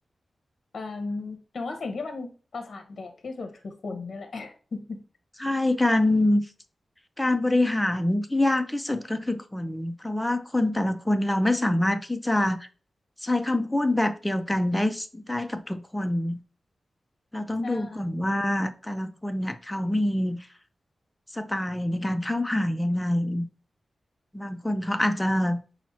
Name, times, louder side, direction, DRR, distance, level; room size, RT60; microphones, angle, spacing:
voice 1, 0.7-5.0 17.6-18.2, left 3 dB, 55° left, 0.7 m, -36 dB
voice 2, 5.4-6.4 7.2-12.7 13.2-16.4 17.3-20.4 21.3-23.4 24.3-25.6, left 1 dB, 10° left, 0.3 m, -25 dB
5.6 x 2.1 x 4.2 m
wide cardioid pair, 145°, 0 cm